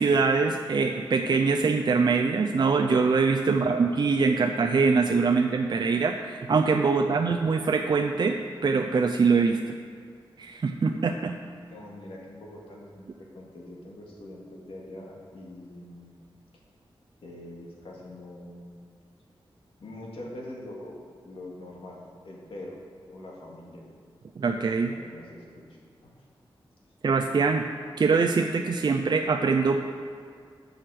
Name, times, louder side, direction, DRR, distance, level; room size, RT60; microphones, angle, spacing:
voice 1, 0.0-9.6 10.4-11.3 24.4-24.9 27.0-27.6 28.0-29.8, right 4 dB, 55° right, 4 dB, 0.5 m, -23 dB
voice 2, 3.4-3.8 7.0-7.2 11.6-16.1 17.2-18.7 19.8-22.0 22.2-22.8 23.1-23.8 24.8-25.6 26.0-26.2, left 1 dB, 85° left, -3 dB, 2.1 m, -43 dB
12.0 x 6.4 x 4.9 m, 2.2 s
wide cardioid pair, 110°, 9 cm